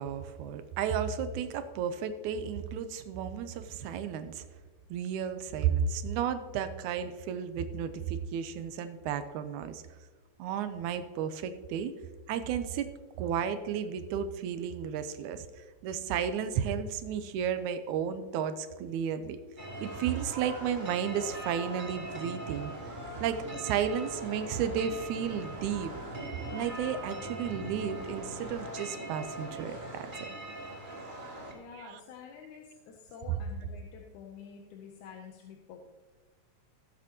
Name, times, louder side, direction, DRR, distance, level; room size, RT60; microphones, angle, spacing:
voice 1, 0.0-4.4 4.9-9.8 10.4-11.9 12.3-12.9 13.2-19.4 19.8-22.7 23.2-25.9 26.5-30.1 31.7-32.0 33.3-33.4, right 8 dB, 85° right, 10 dB, 2.1 m, -33 dB
sound 1, 19.6-31.5, right 1 dB, 15° right, 2.4 m, -41 dB
voice 2, 31.5-35.8, left 6 dB, 80° left, 2 dB, 2.3 m, -48 dB
18.0 x 7.5 x 2.9 m, 1.3 s
omnidirectional pair, 3.5 m